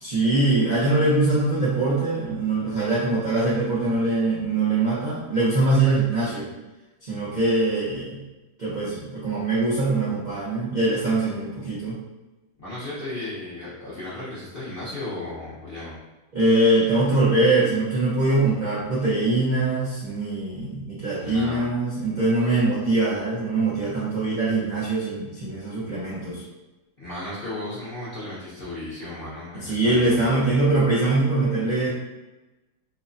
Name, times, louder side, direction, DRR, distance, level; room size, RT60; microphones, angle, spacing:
voice 1, 0.0-6.5 7.0-8.2 8.6-12.0 16.3-26.4 29.5-31.9, right 2 dB, 70° right, -10 dB, 0.4 m, -22 dB
voice 2, 12.6-16.0 21.2-21.6 27.0-30.8, left 1 dB, 60° left, -10 dB, 0.6 m, -35 dB
3.0 x 2.1 x 2.5 m, 1.1 s
omnidirectional pair, 1.8 m